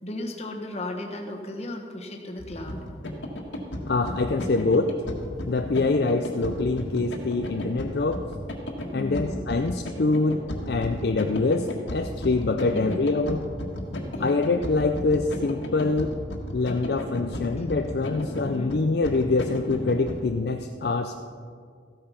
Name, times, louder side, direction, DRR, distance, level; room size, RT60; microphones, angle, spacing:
voice 1, 0.0-2.8 8.9-9.5 12.7-13.0 14.1-14.4 17.6-17.7 18.4-18.7, left 1 dB, 35° left, 2 dB, 1.3 m, -35 dB
sound 1, 2.4-20.2, left 1 dB, 70° left, 1.7 m, -34 dB
voice 2, 3.8-4.9 5.4-8.3 8.9-10.4 10.7-13.4 14.2-16.1 16.5-21.2, left 3 dB, 55° left, 5 dB, 0.5 m, -25 dB
14.5 x 8.7 x 5.7 m, 2.1 s
head